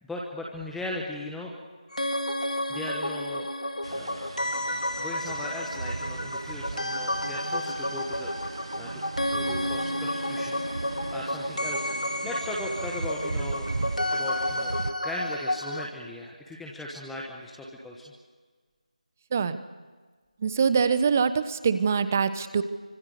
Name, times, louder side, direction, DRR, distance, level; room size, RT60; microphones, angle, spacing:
voice 1, 0.0-1.6 2.4-4.3 5.0-9.0 9.3-13.7 14.1-14.8 15.0-18.0, left 1 dB, ahead, -3 dB, 1.2 m, -38 dB
sound 1, 1.9-15.9, left 1 dB, 80° left, 2.5 m, -31 dB
sound 2, 3.8-14.9, right 3 dB, 45° right, 0.8 m, -37 dB
voice 2, 19.3-19.6 20.4-22.6, right 6 dB, 20° right, 13 dB, 1.0 m, -24 dB
26.0 x 25.5 x 6.7 m, 1.4 s
figure-of-eight pair, 165°, 4 cm